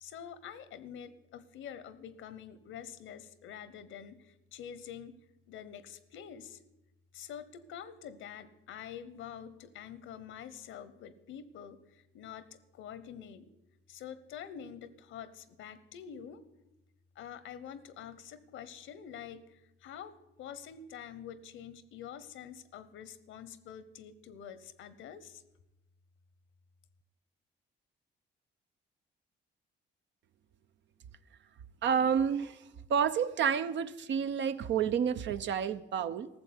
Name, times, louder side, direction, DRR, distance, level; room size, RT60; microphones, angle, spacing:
voice 1, 0.0-6.6 7.1-13.5 13.9-16.4 17.1-25.4, left 8 dB, 85° left, 15 dB, 1.0 m, -47 dB
voice 2, 31.8-32.6 32.9-36.3, right 7 dB, 65° right, 12 dB, 0.8 m, -29 dB
14.0 x 7.2 x 9.5 m, 0.92 s
cardioid pair, 90°, 20 cm